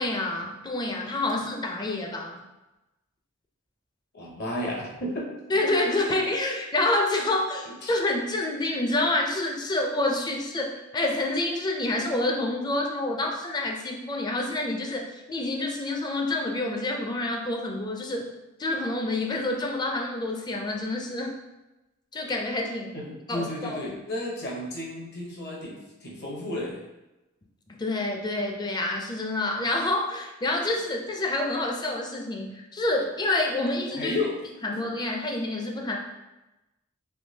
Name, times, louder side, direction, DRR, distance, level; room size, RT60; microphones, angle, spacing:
voice 1, 0.0-2.4 5.5-18.3 18.6-21.3 22.1-22.9 23.3-24.0 27.7-34.2 34.6-36.0, left 2 dB, 20° left, 1 dB, 0.4 m, -28 dB
voice 2, 4.1-5.3 7.8-7.9 22.9-26.8 34.0-34.3 34.7-34.8, left 1 dB, 55° left, -2 dB, 0.8 m, -32 dB
3.5 x 2.7 x 2.7 m, 1.0 s
head